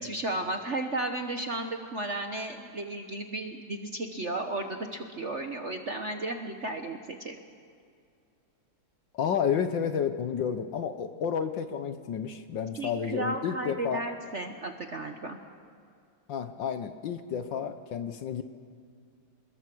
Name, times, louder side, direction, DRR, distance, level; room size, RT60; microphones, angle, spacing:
voice 1, 0.0-7.4 12.7-15.4, right 2 dB, 45° right, 5 dB, 1.0 m, -34 dB
voice 2, 9.1-14.0 16.3-18.4, left 7 dB, 65° left, 9 dB, 1.4 m, -31 dB
26.5 x 21.0 x 6.2 m, 2.3 s
omnidirectional pair, 2.4 m